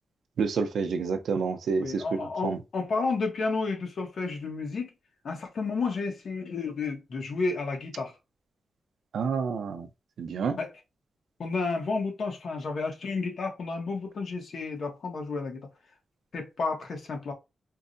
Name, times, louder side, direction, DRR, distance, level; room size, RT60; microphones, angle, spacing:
voice 1, 0.4-2.6 9.1-9.9 10.2-10.6, right 5 dB, 75° right, 0.5 m, -29 dB
voice 2, 1.8-4.9 5.2-8.1 10.6-10.7 11.4-15.7 16.3-17.3, left 4 dB, 55° left, 1.0 m, -31 dB
4.5 x 2.2 x 2.6 m
wide cardioid pair, 175°, 0 cm